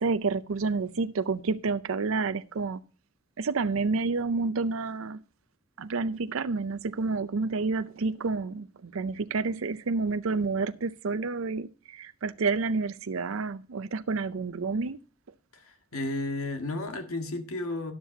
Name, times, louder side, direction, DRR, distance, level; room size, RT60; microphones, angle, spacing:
voice 1, 0.0-2.8 3.4-5.2 5.8-15.0, right 4 dB, 70° right, 0.5 m, -29 dB
voice 2, 15.5-17.9, left 2 dB, 80° left, 1.8 m, -33 dB
13.0 x 11.0 x 2.8 m
head